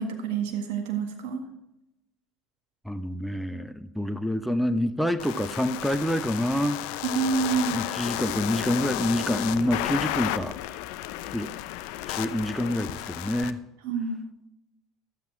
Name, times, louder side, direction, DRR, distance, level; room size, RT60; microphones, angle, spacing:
voice 1, 0.0-1.4 7.0-7.8 13.8-14.2, right 6 dB, 70° right, 4 dB, 1.8 m, -28 dB
voice 2, 2.8-6.8 7.7-10.6 11.3-11.5 12.1-13.6, left 1 dB, ahead, 9 dB, 0.8 m, -27 dB
sound 1, 5.2-13.5, left 14 dB, 70° left, 0.6 m, -33 dB
12.5 x 8.3 x 4.6 m, 0.86 s
hypercardioid pair, 75°, 0 cm